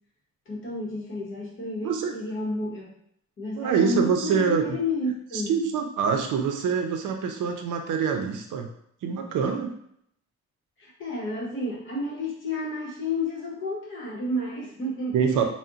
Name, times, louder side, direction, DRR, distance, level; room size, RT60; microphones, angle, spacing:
voice 1, 0.5-2.9 3.4-5.6 10.8-15.4, left 1 dB, 40° left, -3 dB, 0.8 m, -31 dB
voice 2, 1.8-2.1 3.6-4.6 5.3-8.7 9.0-9.7 15.1-15.4, right 6 dB, 90° right, 4 dB, 0.5 m, -25 dB
2.4 x 2.1 x 3.8 m, 0.70 s
wide cardioid pair, 175°, 30 cm